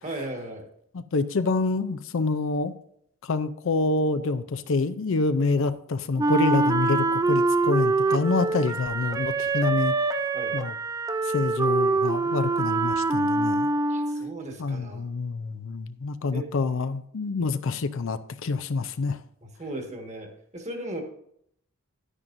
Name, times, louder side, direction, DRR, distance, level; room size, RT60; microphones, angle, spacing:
voice 1, 0.0-0.7 10.3-10.5 13.9-15.0 16.3-16.4 19.4-21.0, right 1 dB, 30° right, 3 dB, 1.6 m, -36 dB
voice 2, 0.9-2.7 3.2-9.9 10.5-10.7 11.2-13.7 14.6-19.2, left 3 dB, 65° left, 12 dB, 0.5 m, -27 dB
Wind instrument woodwind instrument, 6.2-14.4, right 3 dB, 15° right, 0.3 m, -24 dB
10.5 x 9.9 x 2.6 m, 0.70 s
head